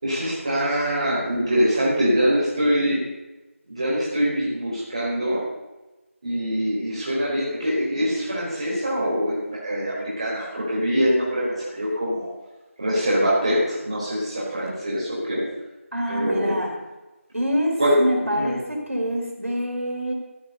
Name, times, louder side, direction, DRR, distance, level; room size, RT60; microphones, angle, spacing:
voice 1, 0.0-3.0 3.7-5.4 6.2-12.3 12.8-15.5 16.1-16.6 17.8-18.5, equal, 25° right, -6 dB, 4.4 m, -23 dB
voice 2, 15.9-16.8 17.3-20.1, equal, 75° right, 0 dB, 4.5 m, -26 dB
14.5 x 9.1 x 6.8 m, 1.1 s
figure-of-eight pair, 170°, 8 cm